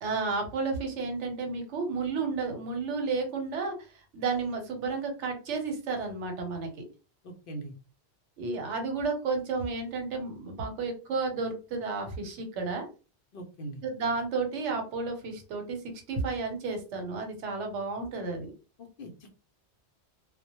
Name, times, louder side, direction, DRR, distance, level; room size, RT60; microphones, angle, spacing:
voice 1, 0.0-3.9 4.1-6.7 8.4-12.9 13.8-15.8 16.1-18.5, right 4 dB, 85° right, 4 dB, 1.0 m, -32 dB
voice 2, 7.2-7.7 13.3-13.8 18.8-19.3, right 1 dB, 60° left, 4 dB, 0.6 m, -41 dB
2.1 x 2.0 x 2.8 m, 0.33 s
omnidirectional pair, 1.2 m